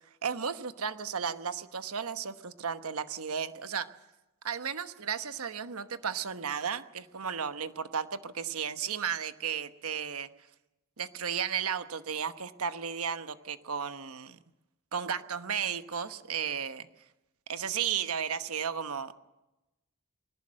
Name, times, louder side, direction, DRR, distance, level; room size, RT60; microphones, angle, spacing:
voice 1, 0.2-3.9 4.4-10.3 11.0-14.4 14.9-16.8 17.5-19.2, right 7 dB, 80° right, 11 dB, 1.1 m, -34 dB
21.0 x 18.0 x 7.5 m, 0.98 s
head